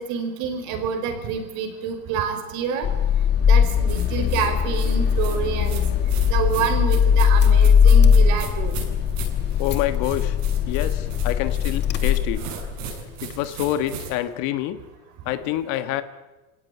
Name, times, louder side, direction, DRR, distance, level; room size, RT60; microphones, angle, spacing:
voice 1, 0.0-2.9 3.4-5.8 6.3-8.8 12.4-12.6, right 7 dB, 45° right, 7 dB, 5.1 m, -28 dB
Car / Engine starting, 2.8-12.9, left 7 dB, 25° left, 1.3 m, -19 dB
sound 1, 3.9-14.1, right 5 dB, 60° right, 7.7 m, -37 dB
voice 2, 9.6-10.4 10.7-12.5 13.2-14.8 15.2-16.0, left 13 dB, 45° left, 11 dB, 1.5 m, -27 dB
26.5 x 18.0 x 9.9 m, 1.1 s
supercardioid pair, 160°, 43 cm